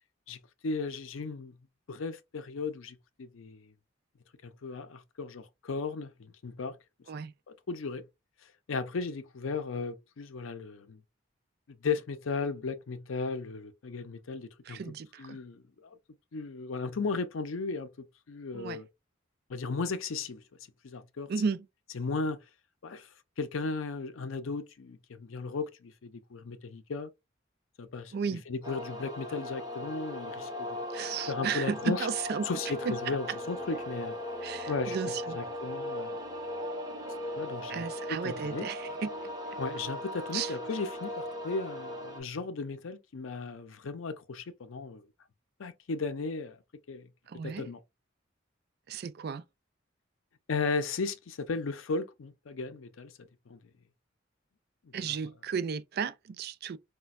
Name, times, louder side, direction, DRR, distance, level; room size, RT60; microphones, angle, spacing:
voice 1, 0.3-1.6 1.9-3.7 4.4-6.8 7.7-8.1 8.7-11.0 11.7-16.0 16.3-18.9 19.5-20.4 20.8-21.3 21.9-22.4 22.8-23.1 23.4-27.1 27.8-30.8 31.3-32.1 32.4-34.1 34.7-36.2 37.4-38.7 39.6-45.0 45.6-46.6 46.9-47.1 47.4-47.8 50.5-53.1 53.5-53.6 54.9-55.2, left 4 dB, 90° left, 0.5 m, -36 dB
voice 2, 14.7-15.4 18.5-18.8 21.3-21.7 28.1-28.4 30.9-32.5 32.9-33.2 34.4-35.4 37.7-39.1 40.3-40.5 47.3-47.7 48.9-49.4 54.9-56.8, right 6 dB, 50° right, 0.3 m, -34 dB
sound 1, 28.6-42.2, left 1 dB, 20° right, 0.9 m, -38 dB
4.1 x 2.2 x 2.3 m
head